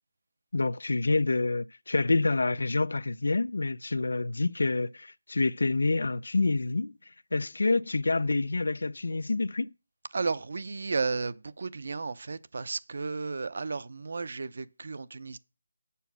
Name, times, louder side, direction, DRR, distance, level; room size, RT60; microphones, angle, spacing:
voice 1, 0.5-6.9 7.3-9.7, left 3 dB, 70° left, 0.5 m, -27 dB
voice 2, 10.1-15.4, right 4 dB, 45° right, 0.7 m, -33 dB
8.2 x 7.0 x 6.2 m
figure-of-eight pair, 175°, 0 cm